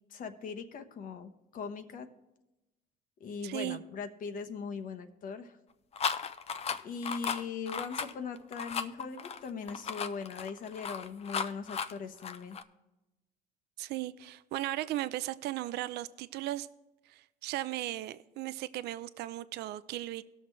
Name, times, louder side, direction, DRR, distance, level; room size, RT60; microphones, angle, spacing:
voice 1, 0.1-2.1 3.2-5.6 6.8-12.6, left 5 dB, 55° left, 1.0 m, -40 dB
voice 2, 3.4-3.8 13.8-16.7 17.1-20.2, right 15 dB, 75° right, 0.5 m, -36 dB
sound 1, 5.9-12.6, left 6 dB, 40° left, 0.6 m, -35 dB
18.5 x 6.5 x 3.3 m
cardioid pair, 110°, 17 cm